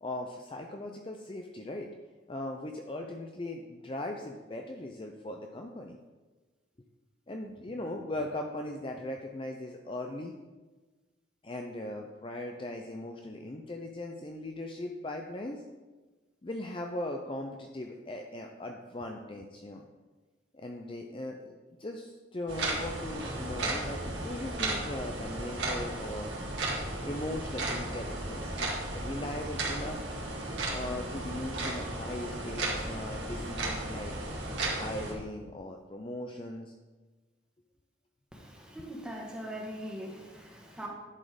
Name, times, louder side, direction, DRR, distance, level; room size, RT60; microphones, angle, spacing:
voice 1, 0.0-1.9 2.3-6.0 7.3-10.3 11.4-15.6 16.4-19.8 20.5-21.5 21.8-26.4 27.0-30.1 30.7-34.2 34.7-36.7 38.8-38.9, left 1 dB, 25° left, 3 dB, 0.5 m, -39 dB
sound 1, 22.5-35.1, right 2 dB, 75° right, 2.1 m, -35 dB
voice 2, 38.3-40.9, equal, 5° right, -2 dB, 1.4 m, -41 dB
10.5 x 4.3 x 5.1 m, 1.2 s
head